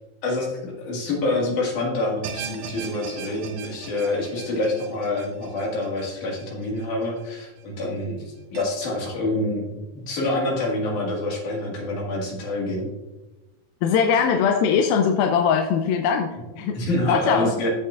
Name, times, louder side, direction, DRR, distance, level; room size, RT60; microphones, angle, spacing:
voice 1, 0.2-12.9 16.7-17.7, left 2 dB, 60° left, -2 dB, 3.1 m, -27 dB
sound 1, 2.2-7.5 7.8-7.9 8.5-8.6, right 6 dB, 80° right, 1.6 m, -39 dB
voice 2, 13.8-16.8 17.1-17.5, left 7 dB, 85° left, 4 dB, 2.4 m, -21 dB
15.0 x 5.8 x 2.4 m, 1.0 s
omnidirectional pair, 4.2 m